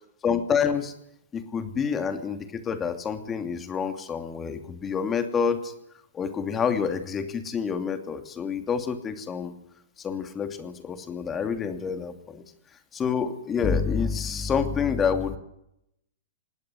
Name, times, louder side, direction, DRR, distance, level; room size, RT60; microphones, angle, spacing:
voice 1, 0.2-0.9 1.3-5.7 6.1-9.5 10.0-12.4 12.9-15.4, left 6 dB, 20° left, 8 dB, 2.6 m, -28 dB
19.5 x 17.0 x 9.8 m, 0.78 s
figure-of-eight pair, 105°, 0 cm